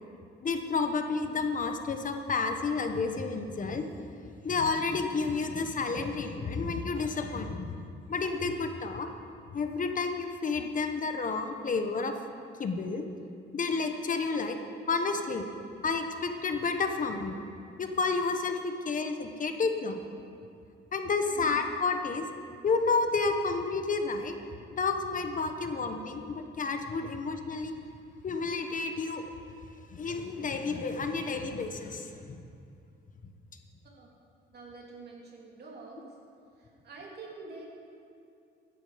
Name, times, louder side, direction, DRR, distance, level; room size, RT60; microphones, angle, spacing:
voice 1, 0.4-3.9 4.4-7.8 8.1-9.1 9.5-12.1 12.6-13.1 13.5-14.6 14.9-15.4 15.8-17.4 17.8-20.0 20.9-22.3 22.6-24.3 24.8-27.7 28.2-29.2 29.9-32.4, left 4 dB, 40° left, 6 dB, 1.2 m, -30 dB
voice 2, 21.3-21.6 25.6-25.7 33.8-34.1 34.5-36.2 36.6-37.7, right 3 dB, 55° right, -2 dB, 3.3 m, -47 dB
14.5 x 10.0 x 5.1 m, 2.5 s
cardioid pair, 90°, 20 cm